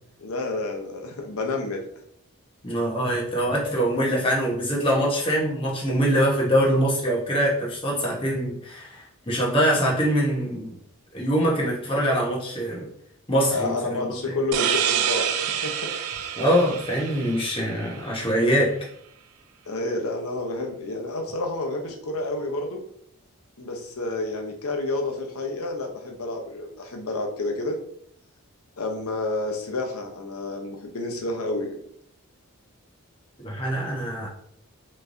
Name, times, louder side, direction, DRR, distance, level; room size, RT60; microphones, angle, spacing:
voice 1, 0.2-1.9 13.5-15.9 19.7-22.8 23.6-27.8 28.8-31.8, left 2 dB, 80° left, 2 dB, 0.8 m, -30 dB
voice 2, 2.6-10.8 11.1-12.9 13.3-14.4 16.4-18.7 33.4-34.3, equal, 25° left, -3 dB, 1.1 m, -23 dB
sound 1, 14.5-18.0, right 9 dB, 85° right, 0.4 m, -27 dB
4.5 x 3.1 x 2.6 m, 0.68 s
head